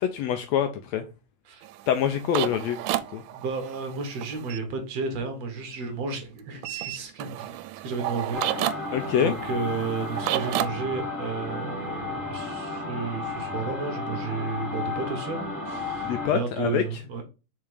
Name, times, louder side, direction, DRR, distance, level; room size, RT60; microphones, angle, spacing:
voice 1, 0.0-1.0 1.9-2.8 3.1-3.2 8.9-9.4 16.0-16.8, left 9 dB, 75° left, 1.6 m, -25 dB
sound 1, 1.6-4.6 6.6-10.7, right 15 dB, 90° right, 2.1 m, -31 dB
voice 2, 3.3-17.2, right 4 dB, 60° right, 2.2 m, -33 dB
sound 2, 8.3-16.3, left 3 dB, ahead, 2.2 m, -33 dB
5.7 x 4.5 x 4.9 m
omnidirectional pair, 3.5 m